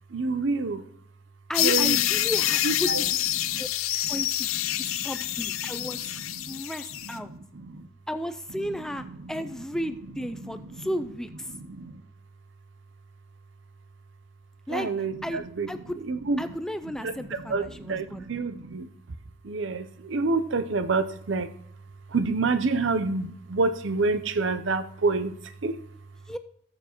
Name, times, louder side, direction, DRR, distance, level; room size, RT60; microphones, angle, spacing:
voice 1, 0.1-0.9 1.6-2.3 2.6-3.1 3.4-3.7 3.9-4.2 4.5-6.6 6.9-7.9 8.5-9.9 10.2-10.9 11.5-12.0 14.7-16.6 17.0-19.2 19.4-21.5 22.1-25.8, right 3 dB, 60° right, 13 dB, 0.6 m, -29 dB
sound 1, 1.5-7.1, left 14 dB, 85° left, 0.5 m, -27 dB
voice 2, 1.5-3.0 3.6-3.7 4.1-4.5 4.8-6.2 6.5-7.3 8.1-11.5 14.7-14.9 15.2-15.4 15.7-16.0 16.4-17.5 17.9-18.2 26.3-26.4, equal, 5° left, 10 dB, 0.3 m, -33 dB
18.5 x 7.1 x 3.0 m, 0.68 s
head